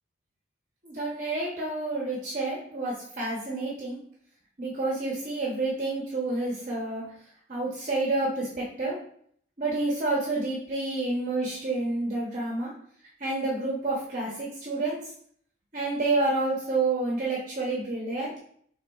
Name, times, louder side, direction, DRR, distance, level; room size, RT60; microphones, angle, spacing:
voice 1, 0.8-4.0 4.6-7.0 7.5-9.0 9.6-12.7 13.2-15.0 15.7-18.4, right 2 dB, 45° right, -4 dB, 0.8 m, -29 dB
5.4 x 3.5 x 2.3 m, 0.63 s
head